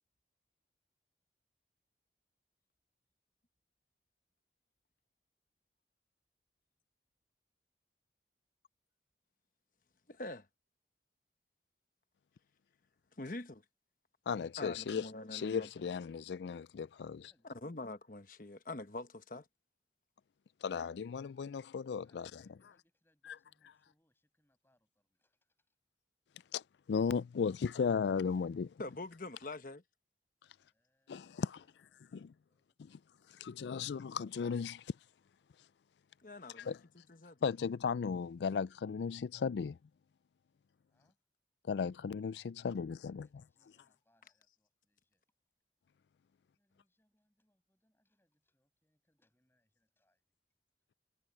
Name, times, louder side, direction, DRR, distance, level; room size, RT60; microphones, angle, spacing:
voice 1, 10.1-10.5 13.2-13.6 14.6-15.7 17.6-19.5 28.8-29.8 36.2-36.7 37.1-37.4, left 2 dB, 50° left, 1.1 m, -44 dB
voice 2, 14.3-17.3 20.6-22.3 26.5-26.6 26.9-28.7 31.1-31.6 32.1-32.3 33.4-34.8 36.6-36.8 37.4-39.8 41.7-43.3, left 6 dB, 75° left, 0.4 m, -36 dB
voice 3, 17.3-17.8 22.0-25.8 30.5-32.2 32.5-33.1 40.9-41.3 42.7-45.2 46.6-50.4, left 1 dB, 15° left, 7.2 m, -79 dB
head